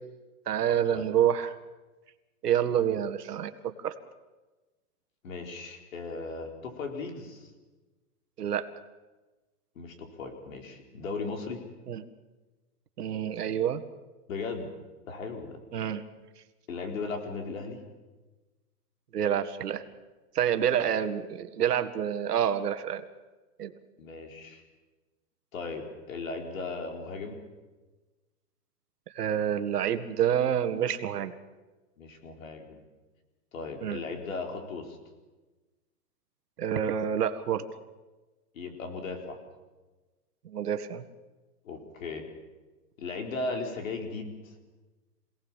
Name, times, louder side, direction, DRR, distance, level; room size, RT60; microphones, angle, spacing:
voice 1, 0.5-1.6 2.4-4.0 8.4-8.7 11.9-12.0 13.0-13.8 15.7-16.0 19.1-19.8 20.4-23.1 23.6-23.7 29.2-31.3 33.8-34.0 36.6-37.6 40.4-41.0, right 9 dB, 85° right, 9 dB, 1.9 m, -28 dB
voice 2, 5.2-7.5 9.8-11.6 14.3-14.7 15.1-15.6 16.7-17.8 24.0-24.6 25.5-27.4 32.0-32.8 33.5-35.0 38.5-39.4 41.6-42.2 43.0-44.5, left 3 dB, 60° left, 4 dB, 4.4 m, -37 dB
26.5 x 18.0 x 7.4 m, 1.2 s
hypercardioid pair, 175°, 46 cm